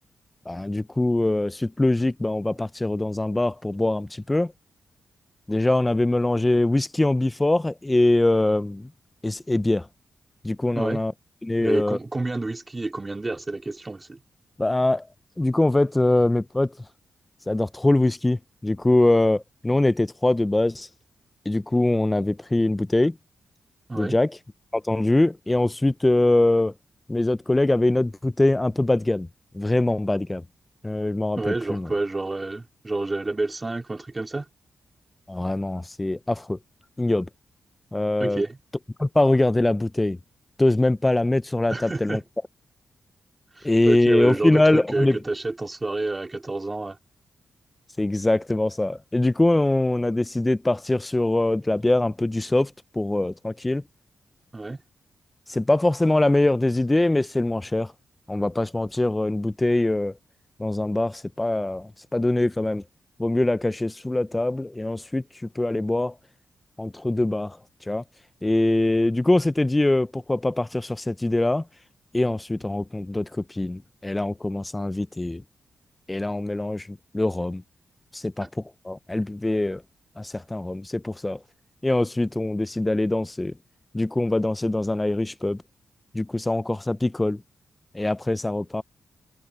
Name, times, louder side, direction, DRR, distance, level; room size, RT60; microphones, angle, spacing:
voice 1, 0.5-4.5 5.5-8.9 9.2-9.9 10.4-11.1 11.4-12.0 14.6-15.1 15.4-16.7 17.5-20.9 21.5-23.1 23.9-24.4 24.7-26.7 27.1-29.3 29.5-30.4 30.8-31.9 35.3-36.6 37.0-37.3 37.9-38.4 39.0-40.2 40.6-42.2 43.6-45.2 48.0-53.8 55.5-57.9 58.3-60.1 60.6-62.8 63.2-65.2 65.6-66.1 66.8-67.6 67.9-68.0 68.4-71.6 72.1-75.4 76.1-77.6 78.1-78.5 78.8-79.8 80.2-81.4 81.8-83.5 83.9-85.6 86.1-87.4 87.9-88.8, left 2 dB, 15° left, 0.4 m, -23 dB
voice 2, 11.6-14.2 23.9-24.2 31.4-34.5 38.2-38.6 41.7-42.2 43.5-47.0 54.5-54.8 78.4-78.5, right 2 dB, 20° right, 2.7 m, -28 dB
cardioid pair, 110°, 0 cm